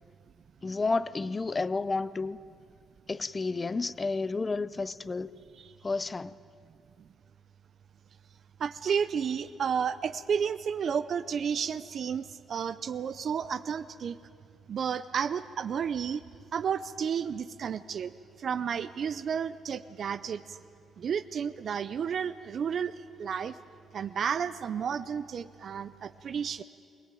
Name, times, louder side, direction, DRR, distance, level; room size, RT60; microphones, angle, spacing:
voice 1, 0.6-2.4 3.1-5.3 5.8-6.3, left 3 dB, 25° left, 0.6 m, -31 dB
voice 2, 8.6-14.2 14.7-16.2 16.5-18.1 18.4-20.6 21.0-22.9 23.2-23.6 23.9-26.6, right 7 dB, 55° right, 0.6 m, -32 dB
23.0 x 18.5 x 9.2 m
cardioid pair, 90°, 0 cm